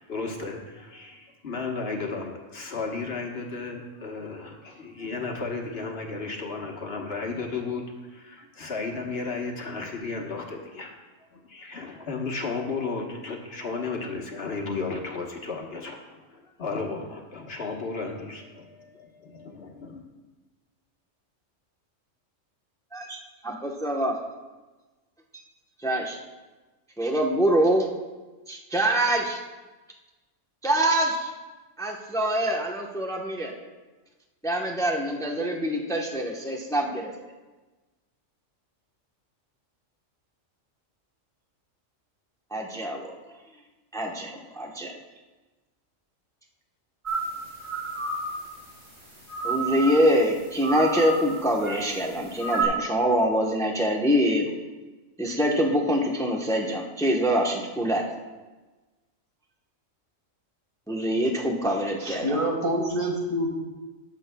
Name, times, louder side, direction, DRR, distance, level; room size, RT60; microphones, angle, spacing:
voice 1, 0.1-10.9 11.5-20.0, left 4 dB, 55° left, 1 dB, 1.4 m, -34 dB
voice 2, 23.4-24.2 25.8-26.2 27.0-27.9 28.5-29.4 30.6-31.3 31.8-33.5 34.4-37.1 42.5-43.1 43.9-44.9 49.4-54.5 55.2-58.0 60.9-62.4, equal, 5° left, 0 dB, 0.8 m, -25 dB
sound 1, 47.0-52.6, right 3 dB, 35° right, 3.7 m, -32 dB
voice 3, 62.0-63.5, equal, 85° right, 0 dB, 2.3 m, -26 dB
21.0 x 7.3 x 2.3 m, 1.2 s
omnidirectional pair, 1.3 m